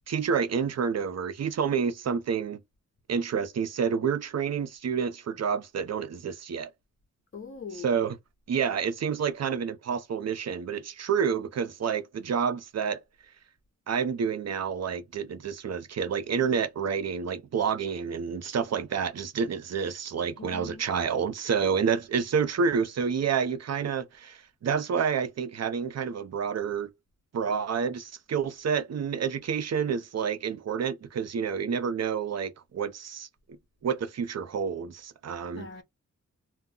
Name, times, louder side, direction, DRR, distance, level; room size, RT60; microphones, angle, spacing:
voice 1, 0.1-2.6 3.1-6.7 7.7-8.2 8.5-13.0 13.9-26.9 27.3-33.3 33.8-35.7, right 6 dB, 55° right, 0.5 m, -29 dB
voice 2, 7.3-7.9 20.4-20.8 35.5-35.8, left 5 dB, 40° left, 0.7 m, -41 dB
2.2 x 2.1 x 3.7 m
wide cardioid pair, 90°, 31 cm